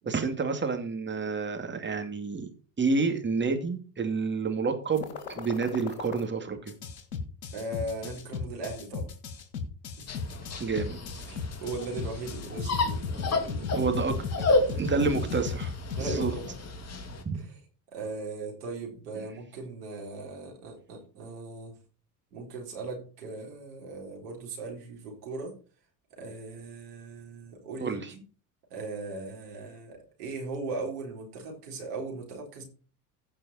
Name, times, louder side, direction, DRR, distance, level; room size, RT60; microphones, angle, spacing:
voice 1, 0.1-2.5 2.8-6.7 10.6-11.2 13.7-14.1 14.8-15.7 16.0-16.3 17.2-17.4 27.8-28.1, right 4 dB, 25° right, 5 dB, 2.7 m, -29 dB
sound 1, 5.0-6.2 6.7-16.3, left 5 dB, 85° left, 1.8 m, -35 dB
voice 2, 7.5-9.1 10.0-10.1 11.3-13.9 14.3-14.8 16.0-16.5 17.3-17.5 17.9-21.7 22.3-25.5 26.2-28.2 28.7-32.6, right 3 dB, 75° right, 0 dB, 4.1 m, -38 dB
sound 2, 10.1-17.2, left 3 dB, 30° left, 2.4 m, -32 dB
15.5 x 5.4 x 4.3 m, 0.37 s
hypercardioid pair, 70°, 48 cm